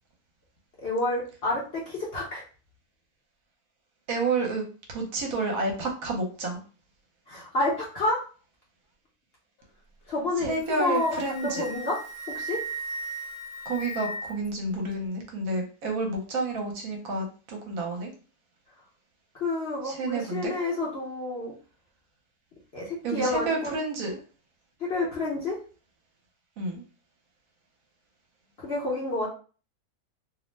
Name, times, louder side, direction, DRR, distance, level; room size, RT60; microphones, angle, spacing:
voice 1, 0.8-2.4 7.3-8.2 10.1-12.0 12.3-12.6 19.4-21.5 22.7-23.8 24.8-25.5 28.6-29.3, left 2 dB, 55° left, -4 dB, 0.8 m, -29 dB
voice 2, 4.1-6.6 10.4-11.7 13.7-18.1 19.8-20.5 23.0-24.2 26.6-26.8, right 3 dB, 70° right, 1 dB, 1.1 m, -30 dB
Wind instrument woodwind instrument, 10.5-14.5, right 2 dB, 70° left, 1.1 m, -37 dB
2.7 x 2.0 x 3.1 m, 0.38 s
omnidirectional pair, 1.6 m